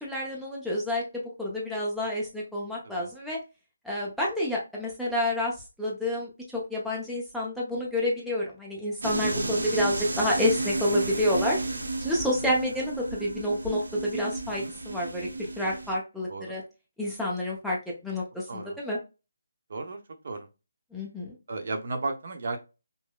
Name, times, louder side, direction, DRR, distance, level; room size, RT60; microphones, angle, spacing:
voice 1, 0.0-3.4 3.8-11.6 12.0-16.6 17.0-17.8 18.0-19.0 20.9-21.3, left 1 dB, ahead, -6 dB, 0.6 m, -29 dB
sound 1, 9.0-16.0, right 2 dB, 85° right, 1.0 m, -32 dB
voice 2, 9.3-9.6 12.4-12.6 14.6-14.7 16.3-16.6 18.5-18.8 19.7-20.5 21.5-22.6, right 3 dB, 50° right, 5 dB, 0.8 m, -35 dB
5.3 x 2.1 x 2.3 m, 0.28 s
hypercardioid pair, 170°, 0 cm